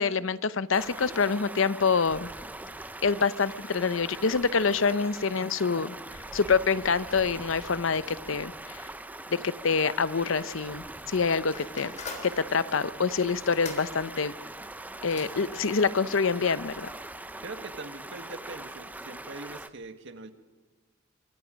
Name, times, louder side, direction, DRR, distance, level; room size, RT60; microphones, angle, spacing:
voice 1, 0.0-2.3 3.0-6.0 6.3-8.8 9.3-11.9 12.2-14.3 15.0-16.9, left 5 dB, 65° left, 16 dB, 0.7 m, -26 dB
Stream, 0.7-19.7, right 1 dB, 10° right, 0.7 m, -42 dB
sound 1, 11.5-17.4, left 4 dB, 35° left, 3.6 m, -46 dB
voice 2, 17.4-20.3, right 3 dB, 65° right, 8 dB, 1.7 m, -42 dB
24.5 x 24.0 x 5.2 m, 1.3 s
head